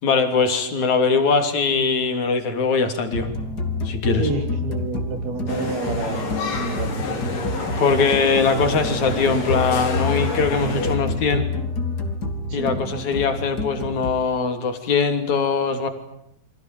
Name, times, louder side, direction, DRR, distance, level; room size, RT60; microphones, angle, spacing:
voice 1, 0.0-3.3 3.8-4.3 7.8-11.5 12.5-15.9, left 4 dB, 50° left, 7 dB, 4.2 m, -21 dB
sound 1, 3.1-14.1, left 2 dB, 25° left, 3.0 m, -28 dB
voice 2, 4.2-7.2 12.5-12.8, right 4 dB, 75° right, 6 dB, 5.3 m, -29 dB
sound 2, 5.5-10.9, left 3 dB, 80° left, 6.9 m, -28 dB
29.5 x 25.0 x 7.7 m, 0.77 s
omnidirectional pair, 4.5 m